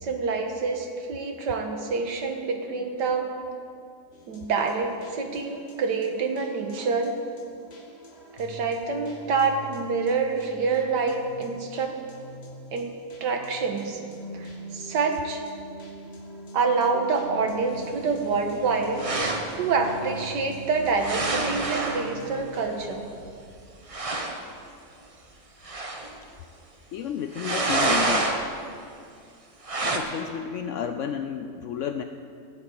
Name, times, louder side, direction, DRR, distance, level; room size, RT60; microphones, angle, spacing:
voice 1, 0.0-3.3 4.3-7.1 8.3-11.9 12.7-12.9 13.2-14.0 14.3-15.4 16.5-19.1 19.6-23.1, right 4 dB, 75° right, 3 dB, 1.9 m, -27 dB
sound 1, 4.1-22.9, right 2 dB, 40° left, 1.7 m, -43 dB
sound 2, 17.2-23.3, right 1 dB, 45° right, 2.9 m, -46 dB
sound 3, 19.0-19.5 21.0-22.1 23.3-23.4 23.6-23.7 23.9-24.4 25.6-26.1 27.3-28.4 29.6-30.0, right 2 dB, 25° right, 0.9 m, -27 dB
voice 2, 26.9-28.3 29.8-32.0, left 8 dB, 80° left, 8 dB, 0.6 m, -31 dB
12.0 x 9.2 x 8.1 m, 2.4 s
omnidirectional pair, 1.9 m